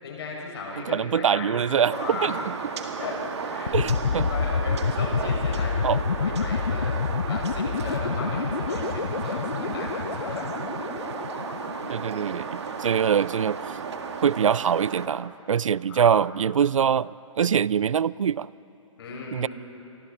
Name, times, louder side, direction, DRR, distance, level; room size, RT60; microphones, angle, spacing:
voice 1, 0.0-2.4 3.0-7.0 7.3-10.5 15.9-16.2 19.0-19.5, left 4 dB, 50° left, -1 dB, 6.1 m, -36 dB
voice 2, 0.9-2.3 3.7-4.3 5.8-6.0 11.9-13.6 14.2-17.1 17.4-18.5 19.3-19.5, right 8 dB, 75° right, 23 dB, 0.4 m, -23 dB
sound 1, 1.9-15.1, right 5 dB, 55° right, 1.9 m, -34 dB
sound 2, 3.7-12.5, left 5 dB, 80° left, 0.7 m, -28 dB
30.0 x 24.0 x 4.2 m, 3.0 s
figure-of-eight pair, 140°, 17 cm